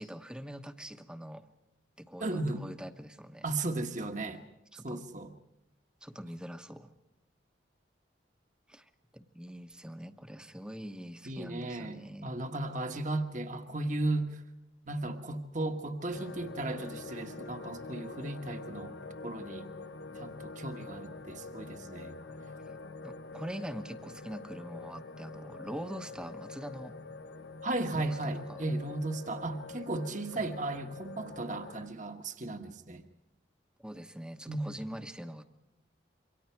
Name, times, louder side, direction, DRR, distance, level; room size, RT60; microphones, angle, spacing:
voice 1, 0.0-1.5 2.0-3.5 4.7-5.0 6.0-6.9 8.7-12.3 22.2-22.4 23.0-26.9 27.9-28.6 30.3-30.5 33.8-35.4, equal, 5° right, 8 dB, 1.0 m, -43 dB
voice 2, 2.2-2.7 3.4-4.4 4.8-5.3 11.2-14.4 14.8-19.0 19.2-19.7 20.1-22.2 27.6-33.0 34.5-34.6, right 2 dB, 40° right, 6 dB, 1.3 m, -35 dB
sound 1, 16.1-31.9, left 3 dB, 75° left, 1.0 m, -45 dB
27.5 x 24.0 x 4.6 m, 0.88 s
head